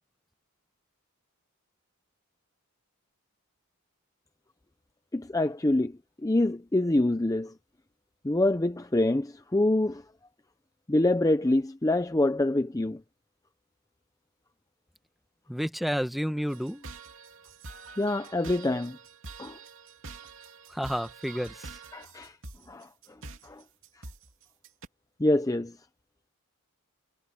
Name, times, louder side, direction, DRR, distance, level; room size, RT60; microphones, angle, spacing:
voice 1, 5.1-7.5 8.2-10.0 10.9-13.0 18.0-19.0 19.4-19.6 21.9-22.4 22.7-22.9 23.4-23.6 25.2-25.8, left 1 dB, 15° left, 0.5 m, -26 dB
voice 2, 15.5-16.8 20.7-21.8, equal, ahead, 1.0 m, -31 dB
sound 1, 16.5-24.9, right 3 dB, 60° right, 2.9 m, -46 dB
head